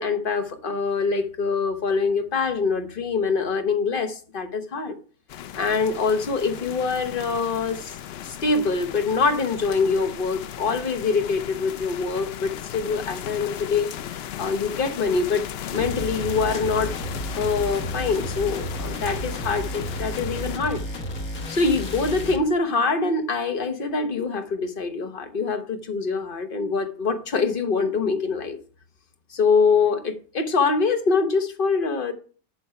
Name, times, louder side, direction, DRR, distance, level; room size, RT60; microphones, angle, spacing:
voice 1, 0.0-5.0 5.5-7.9 8.2-13.9 14.4-15.4 15.7-16.9 17.4-20.8 21.5-28.6 29.3-32.1, left 4 dB, 40° left, 1.2 m, -24 dB
sound 1, 5.3-20.6, left 10 dB, 65° left, 0.6 m, -36 dB
sound 2, 15.7-22.4, equal, 85° left, 1.7 m, -32 dB
9.5 x 6.3 x 4.4 m
omnidirectional pair, 1.5 m